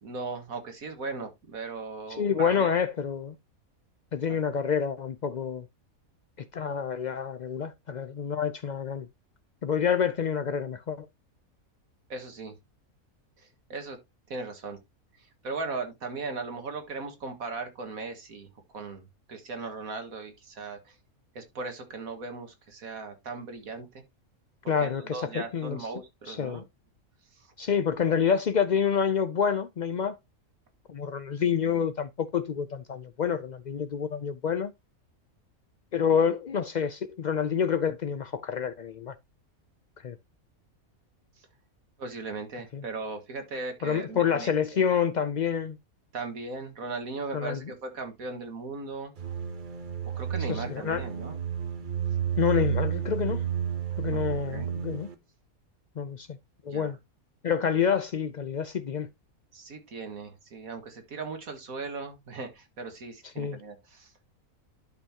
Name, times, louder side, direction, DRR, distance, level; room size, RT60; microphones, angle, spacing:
voice 1, 0.0-2.7 4.3-4.4 12.1-12.6 13.4-14.0 14.3-14.8 15.2-18.5 18.7-21.0 21.3-24.0 24.6-26.6 27.3-27.5 42.0-44.8 46.1-49.1 50.2-51.4 54.1-54.2 54.5-54.7 56.7-56.9 59.5-64.1, right 3 dB, 75° right, 2.2 m, -38 dB
voice 2, 2.1-3.4 4.1-5.7 6.4-9.1 9.6-11.1 24.7-25.8 26.3-26.6 27.6-30.2 30.9-34.7 35.9-39.2 40.0-40.2 42.7-42.8 43.8-45.8 47.3-47.6 50.5-51.0 52.4-53.4 54.0-55.1 56.0-56.3 56.6-57.0 57.4-59.1 63.4-63.6, left 7 dB, 85° left, 0.4 m, -28 dB
sound 1, 49.2-55.1, right 8 dB, 40° right, 1.0 m, -31 dB
11.5 x 5.6 x 2.8 m
omnidirectional pair, 1.5 m